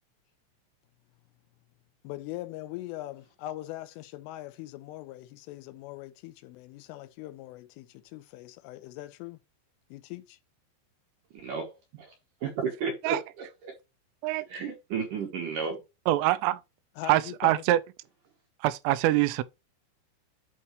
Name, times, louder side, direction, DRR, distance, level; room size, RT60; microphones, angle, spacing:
voice 1, 2.1-9.4 9.9-10.4 17.0-17.6, left 16 dB, 90° left, 3.3 m, -41 dB
voice 2, 11.3-12.1 12.4-13.5 14.5-15.8, right 5 dB, 70° right, 2.0 m, -33 dB
voice 3, 16.1-16.6 17.1-17.8 18.6-19.4, right 15 dB, 90° right, 3.2 m, -24 dB
11.0 x 4.2 x 3.1 m
omnidirectional pair, 5.7 m